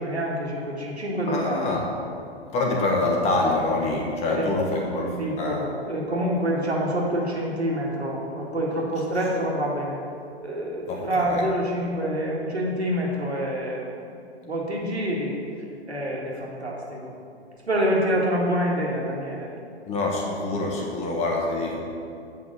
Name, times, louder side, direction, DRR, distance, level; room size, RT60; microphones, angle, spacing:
voice 1, 0.0-1.7 4.2-4.5 5.2-10.0 10.4-14.0 14.5-15.3 15.9-17.1 17.7-19.5, equal, 80° right, -3 dB, 2.0 m, -27 dB
voice 2, 1.3-1.9 2.5-5.7 10.9-11.5 19.9-21.8, left 2 dB, 20° left, 0 dB, 1.1 m, -25 dB
7.8 x 5.7 x 6.2 m, 2.5 s
figure-of-eight pair, 110°, 32 cm